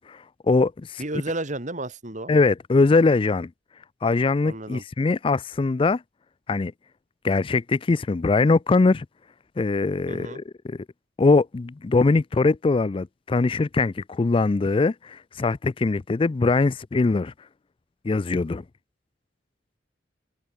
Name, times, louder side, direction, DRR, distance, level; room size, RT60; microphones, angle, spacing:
voice 1, 0.0-1.0 2.3-3.5 4.0-6.0 6.5-6.7 7.2-9.1 9.6-10.8 11.2-17.3 18.0-18.6, left 3 dB, 30° left, 0.4 m, -22 dB
voice 2, 1.0-2.3 4.4-4.8 10.1-10.4, right 2 dB, 40° right, 3.0 m, -32 dB
head